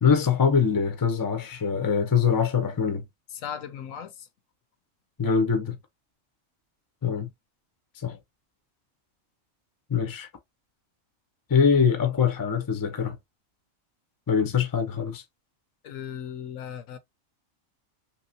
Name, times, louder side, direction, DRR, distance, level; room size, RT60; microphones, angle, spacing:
voice 1, 0.0-3.0 5.2-5.7 7.0-7.3 8.0-8.2 9.9-10.3 11.5-13.2 14.3-15.2, left 6 dB, 25° left, 0.5 m, -23 dB
voice 2, 3.3-4.3 15.8-17.0, left 8 dB, 85° left, 1.0 m, -37 dB
3.0 x 2.9 x 2.7 m
omnidirectional pair, 1.4 m